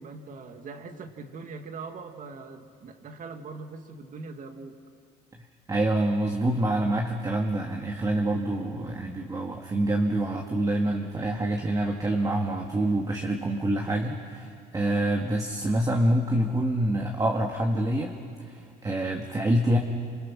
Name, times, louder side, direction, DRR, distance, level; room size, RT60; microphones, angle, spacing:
voice 1, 0.0-4.8, right 4 dB, 50° right, 6 dB, 2.3 m, -41 dB
voice 2, 5.7-18.2 18.5-19.8, right 1 dB, 20° right, 1 dB, 1.9 m, -26 dB
28.5 x 27.0 x 6.2 m, 2.3 s
cardioid pair, 110°, 17 cm